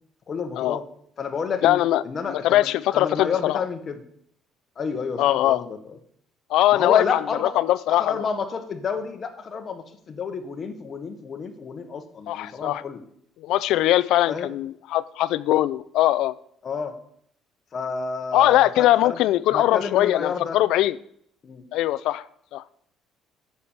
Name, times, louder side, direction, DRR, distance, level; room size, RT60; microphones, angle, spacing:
voice 1, 0.3-0.8 1.2-4.0 4.8-5.8 6.7-7.6 7.9-13.0 14.3-14.5 16.6-16.9 17.7-19.2 19.5-20.6 21.4-21.6, left 5 dB, 35° left, 5 dB, 1.3 m, -30 dB
voice 2, 1.6-2.0 2.3-3.6 5.2-5.6 6.5-8.1 12.3-12.8 13.4-16.3 18.3-21.0 21.7-22.3 22.5-22.6, left 14 dB, 75° left, 17 dB, 0.4 m, -21 dB
7.7 x 6.9 x 7.3 m, 0.68 s
cardioid pair, 145°, 0 cm